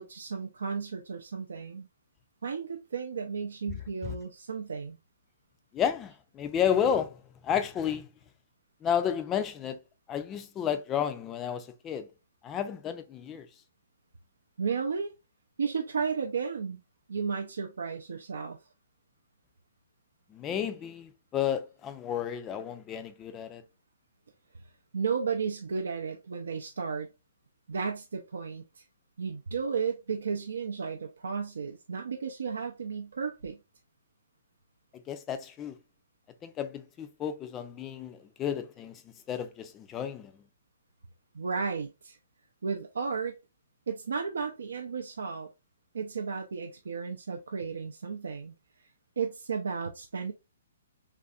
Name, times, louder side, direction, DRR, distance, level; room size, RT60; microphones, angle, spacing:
voice 1, 0.0-1.9 2.4-5.0 14.6-15.1 15.6-16.8 17.1-18.6 24.9-27.1 27.7-28.8 29.2-33.6 41.3-42.2 42.6-43.3 43.9-45.5 45.9-48.5 49.2-50.3, right 5 dB, 70° right, 0.4 m, -33 dB
voice 2, 5.7-8.1 8.8-9.8 10.1-12.1 12.4-13.5 20.3-23.6 35.1-35.8 36.4-39.0 39.3-40.3, left 8 dB, 20° left, 0.4 m, -32 dB
3.3 x 2.5 x 2.3 m
figure-of-eight pair, 130°, 0 cm